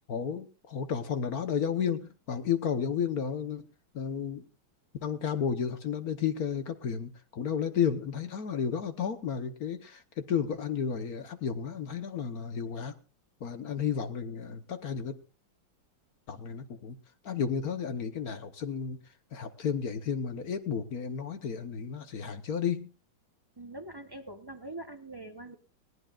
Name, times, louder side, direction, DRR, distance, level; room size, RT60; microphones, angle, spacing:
voice 1, 0.1-3.7 3.9-4.4 5.0-12.9 13.4-15.2 16.3-17.0 17.2-19.0 19.3-22.9, left 7 dB, 55° left, 9 dB, 1.3 m, -32 dB
voice 2, 23.6-25.6, right 2 dB, 25° right, 6 dB, 0.5 m, -43 dB
19.0 x 18.0 x 2.4 m, 0.34 s
omnidirectional pair, 2.2 m